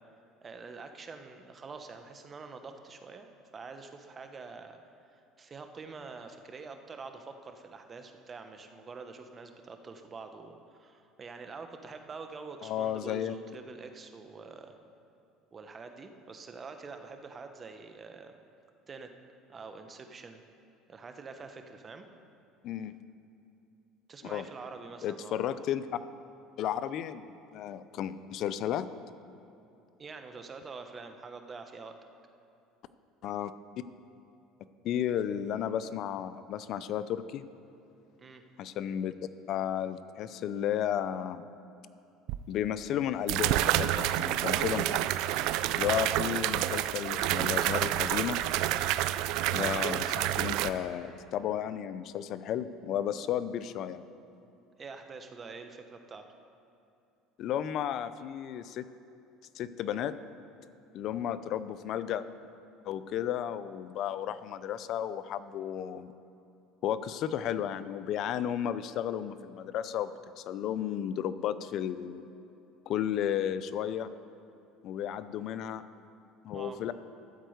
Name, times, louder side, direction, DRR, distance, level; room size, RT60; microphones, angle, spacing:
voice 1, 0.4-3.3 3.5-4.8 5.1-14.8 15.5-18.3 18.9-19.1 19.5-20.4 20.9-22.1 24.1-25.7 30.0-32.0 38.2-38.4 54.8-56.3 76.5-76.8, right 4 dB, 30° right, 6 dB, 0.9 m, -46 dB
voice 2, 12.6-13.3 22.6-22.9 24.2-24.5 25.0-25.9 26.6-27.2 27.5-28.9 33.2-33.5 34.8-37.4 38.6-39.1 39.5-41.4 42.5-45.0 45.8-48.4 49.5-54.0 57.4-58.9 59.5-60.1 60.9-62.2 62.9-66.1 66.8-72.3 72.9-74.1 74.8-75.8 76.4-76.9, left 10 dB, 55° left, 14 dB, 0.4 m, -33 dB
sound 1, 42.3-42.4 43.3-50.7, right 14 dB, 70° right, 0.3 m, -28 dB
13.0 x 4.5 x 8.0 m, 2.7 s
supercardioid pair, 105°, 0 cm